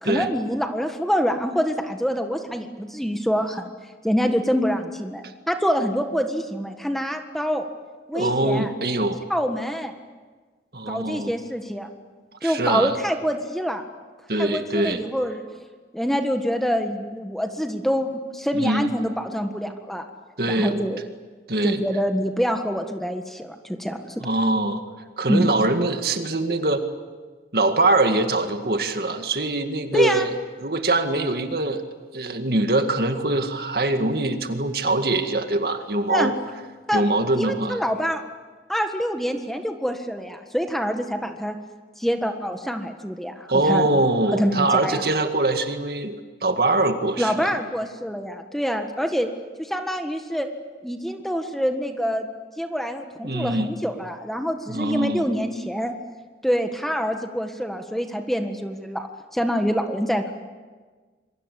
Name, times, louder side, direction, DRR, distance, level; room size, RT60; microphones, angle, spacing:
voice 1, 0.0-3.7 4.0-7.6 8.1-8.7 9.3-9.9 10.9-11.9 12.4-13.8 14.4-15.4 15.9-20.0 20.5-21.0 21.6-24.3 25.3-25.5 29.9-30.3 36.1-36.3 36.9-37.0 37.4-38.2 38.7-41.5 42.0-43.9 44.3-45.0 47.2-49.3 49.6-50.5 50.8-52.3 52.6-55.9 56.4-59.1 59.3-60.3, equal, ahead, 5 dB, 1.6 m, -26 dB
voice 2, 8.1-9.2 10.7-11.3 12.4-13.0 14.3-15.0 18.5-18.9 20.4-20.8 21.5-21.8 24.2-24.8 25.2-26.8 27.5-30.3 30.6-31.8 32.1-36.3 36.9-37.8 43.5-47.5 53.2-53.7 54.7-55.3, right 2 dB, 60° right, 7 dB, 2.0 m, -23 dB
27.5 x 23.0 x 8.5 m, 1.4 s
head